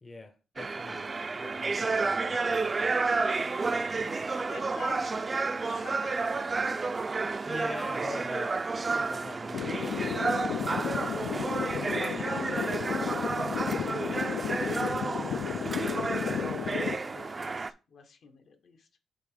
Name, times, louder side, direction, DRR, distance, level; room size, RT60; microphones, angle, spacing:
voice 1, 0.0-1.1 1.4-3.1 3.6-4.3 7.4-9.8, left 2 dB, 25° left, 0.7 m, -44 dB
sound 1, 0.6-17.7, right 4 dB, 30° right, 0.4 m, -31 dB
voice 2, 3.9-5.1 5.6-6.8 12.0-13.2 14.2-15.0 16.2-18.9, left 5 dB, 60° left, 1.2 m, -47 dB
sound 2, 9.5-16.9, left 8 dB, 80° left, 0.4 m, -33 dB
6.9 x 3.7 x 5.0 m
cardioid pair, 110°, 0 cm